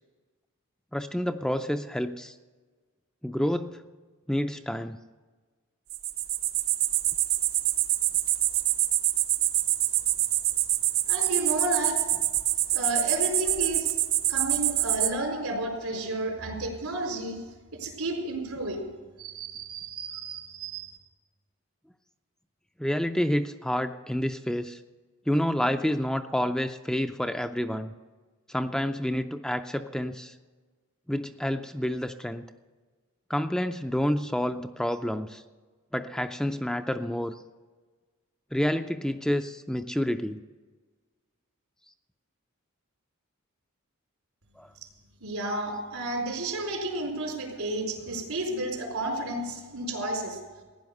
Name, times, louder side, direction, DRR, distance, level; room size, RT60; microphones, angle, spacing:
voice 1, 0.9-2.3 3.2-3.8 4.3-5.0 22.8-24.8 25.3-27.9 28.5-30.3 31.1-32.4 33.3-35.4 35.9-37.4 38.5-40.4 44.6-44.7, equal, 5° left, 8 dB, 0.4 m, -29 dB
sound 1, 5.9-15.1, right 14 dB, 65° right, 0.7 m, -26 dB
voice 2, 11.0-12.2 12.7-14.0 14.3-17.4 17.8-18.9 19.2-21.0 45.2-50.4, right 1 dB, 85° right, 0 dB, 4.2 m, -32 dB
15.5 x 10.5 x 6.6 m, 1.4 s
head